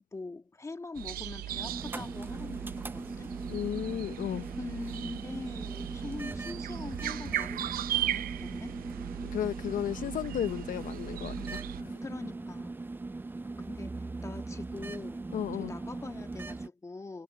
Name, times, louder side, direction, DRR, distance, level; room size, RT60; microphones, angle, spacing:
voice 1, 0.0-3.4 4.6-8.8 11.3-11.6 12.0-12.8 13.6-17.2, left 3 dB, 15° left, 1.6 m, -43 dB
sound 1, 1.0-11.8, right 13 dB, 60° right, 0.7 m, -38 dB
Bell, 1.2-2.6 2.8-2.9, right 17 dB, 75° right, 2.2 m, -53 dB
sound 2, 1.5-16.7, right 3 dB, 10° right, 0.5 m, -40 dB
voice 2, 3.5-4.5 9.2-11.6 15.3-15.7, left 10 dB, 50° left, 0.8 m, -34 dB
cardioid pair, 110°, 17 cm